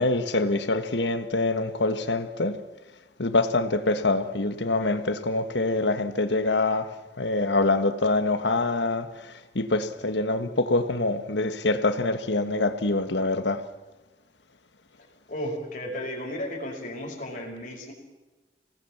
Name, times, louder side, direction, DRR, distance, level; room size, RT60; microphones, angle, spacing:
voice 1, 0.0-2.6 3.2-6.9 7.2-13.6, left 2 dB, 90° left, 1.6 m, -25 dB
voice 2, 15.3-17.9, equal, 50° left, 5.3 m, -34 dB
26.0 x 18.5 x 7.3 m
head